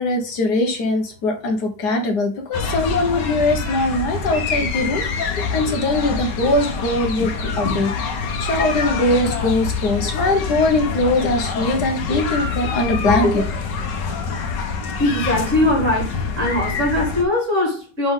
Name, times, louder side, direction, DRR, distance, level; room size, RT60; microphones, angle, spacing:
voice 1, 0.0-13.4, left 2 dB, 70° left, 1.8 m, -21 dB
sound 1, 2.5-17.2, left 5 dB, 85° left, 1.7 m, -26 dB
voice 2, 15.0-18.1, left 1 dB, 45° right, 3.4 m, -20 dB
5.8 x 5.2 x 3.7 m
omnidirectional pair, 1.8 m